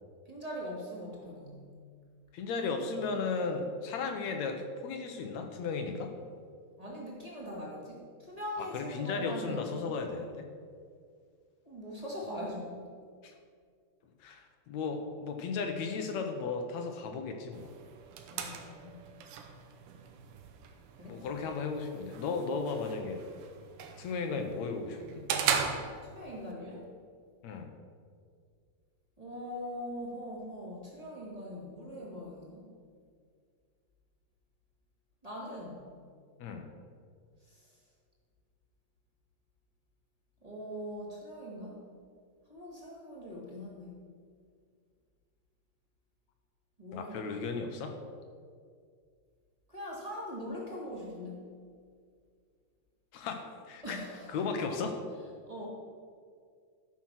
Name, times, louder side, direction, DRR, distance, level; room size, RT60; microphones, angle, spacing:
voice 1, 0.3-1.7 6.8-9.9 11.6-12.8 18.3-19.1 21.0-21.2 26.1-26.9 29.2-32.7 35.2-35.8 37.5-37.7 40.4-41.8 42.5-44.0 46.8-47.4 49.7-51.4 53.8-54.4 54.7-54.8 55.5-55.7, equal, 15° right, -5 dB, 1.5 m, -41 dB
voice 2, 2.3-6.1 8.6-10.4 13.2-13.3 14.2-17.7 21.1-23.3 24.0-25.2 27.4-27.7 36.4-36.7 46.9-48.0 53.1-54.9, left 4 dB, 70° left, 5 dB, 2.0 m, -35 dB
sound 1, 17.5-26.5, right 7 dB, 85° right, 2.5 m, -38 dB
13.0 x 6.1 x 6.1 m, 2.1 s
omnidirectional pair, 3.6 m